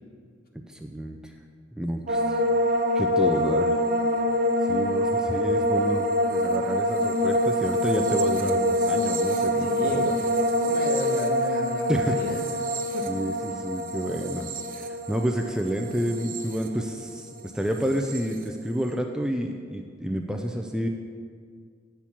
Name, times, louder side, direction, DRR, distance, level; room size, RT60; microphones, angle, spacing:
voice 1, 0.7-1.3 1.8-2.4 3.0-3.8 4.7-10.1 11.9-12.2 13.1-14.5 14.7-20.9, right 1 dB, 5° right, 3 dB, 0.3 m, -30 dB
sound 1, 2.1-17.3 17.6-18.2, equal, 45° right, 0.7 m, -25 dB
voice 2, 9.6-12.4 12.9-13.1, left 1 dB, 50° left, 2 dB, 1.2 m, -35 dB
8.4 x 4.4 x 7.1 m, 2.1 s
head